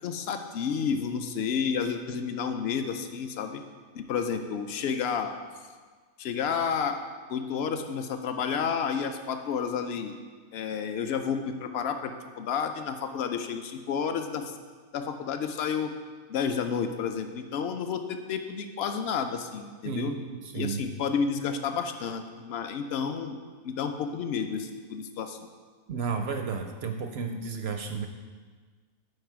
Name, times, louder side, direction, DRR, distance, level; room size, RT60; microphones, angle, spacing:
voice 1, 0.0-3.6 3.9-5.3 6.2-7.0 7.3-10.2 10.5-12.1 12.4-14.5 14.9-15.9 16.3-20.2 20.5-23.4 23.6-25.4, left 6 dB, 65° left, 7 dB, 0.6 m, -30 dB
voice 2, 19.8-20.8 25.9-28.1, right 5 dB, 65° right, 5 dB, 0.6 m, -32 dB
7.9 x 4.9 x 4.6 m, 1.5 s
omnidirectional pair, 1.5 m